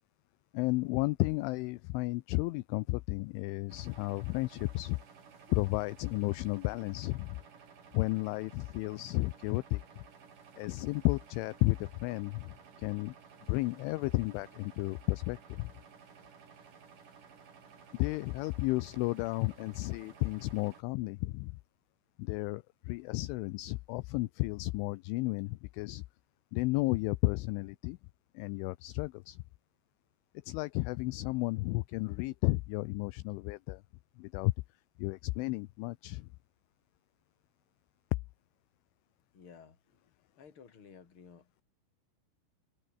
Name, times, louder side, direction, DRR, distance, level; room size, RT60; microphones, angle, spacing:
voice 1, 0.5-5.0 5.5-7.4 7.9-9.8 10.6-13.2 13.5-15.7 17.9-21.6 22.2-26.0 26.5-28.0 28.3-29.4 30.4-33.8 34.2-34.5 35.0-36.3, left 22 dB, 80° left, 2.9 m, -33 dB
sound 1, 3.7-20.8, right 6 dB, 45° right, 4.9 m, -56 dB
voice 2, 39.3-41.6, left 6 dB, 30° left, 3.4 m, -56 dB
omnidirectional pair, 5.9 m